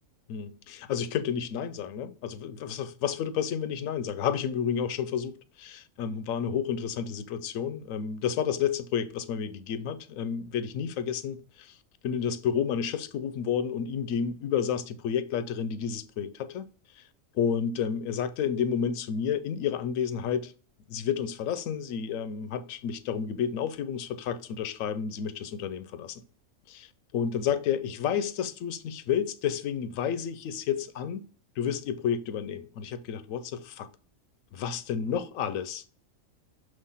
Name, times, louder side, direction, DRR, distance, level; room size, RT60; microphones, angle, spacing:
voice 1, 0.3-11.8 12.0-16.7 17.3-20.5 20.9-26.2 26.7-31.2 31.6-33.9 34.5-35.8, left 8 dB, 85° left, 1.0 m, -31 dB
5.6 x 3.2 x 5.5 m
omnidirectional pair, 1.4 m